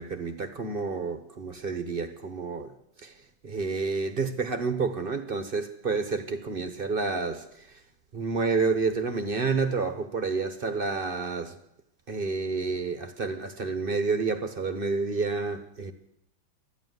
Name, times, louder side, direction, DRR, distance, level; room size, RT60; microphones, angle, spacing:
voice 1, 0.0-2.7 3.0-3.1 3.4-7.8 8.1-11.6 12.1-15.9, right 4 dB, 40° right, 0.9 m, -29 dB
14.0 x 11.0 x 9.4 m
omnidirectional pair, 2.3 m